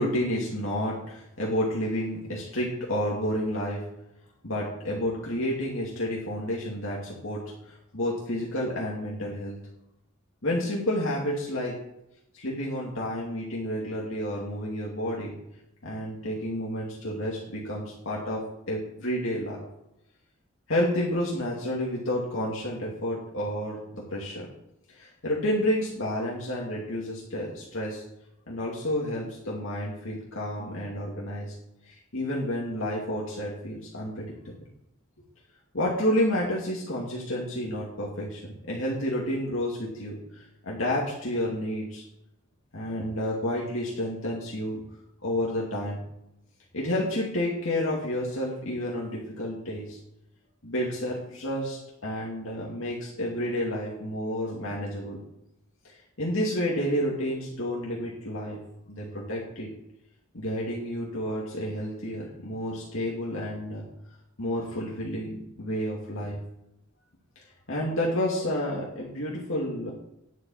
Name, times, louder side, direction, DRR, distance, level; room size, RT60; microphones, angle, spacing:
voice 1, 0.0-3.8 4.4-7.4 7.7-9.6 10.4-11.7 12.3-15.3 15.8-18.4 18.7-19.6 20.7-24.5 24.9-28.0 28.5-31.5 31.9-34.3 35.7-40.2 40.6-42.0 42.7-44.8 45.2-46.0 46.7-50.0 50.6-55.2 55.8-58.6 58.9-59.7 60.3-63.8 64.4-66.4 67.7-69.9, equal, 65° left, -4 dB, 2.6 m, -30 dB
10.5 x 5.6 x 8.7 m, 0.84 s
head